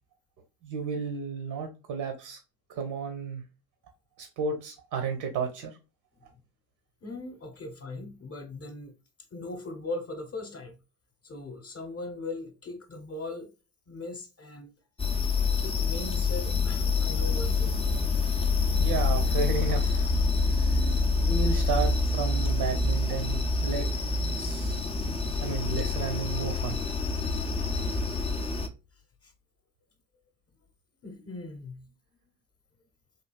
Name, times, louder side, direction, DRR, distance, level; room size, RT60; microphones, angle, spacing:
voice 1, 0.6-2.4 2.7-3.4 4.2-5.8 18.8-20.1 20.4-20.8 21.3-23.9 24.4-24.8 25.4-26.8, right 5 dB, 60° right, 0.9 m, -33 dB
voice 2, 7.0-8.9 9.3-10.8 11.2-13.5 13.9-14.7 15.5-17.8 20.9-21.2 29.2-29.3 31.0-31.9, left 2 dB, 30° left, 0.8 m, -39 dB
sound 1, 15.0-28.7, left 3 dB, 15° left, 0.4 m, -27 dB
3.3 x 2.7 x 2.2 m
hypercardioid pair, 65°, 46 cm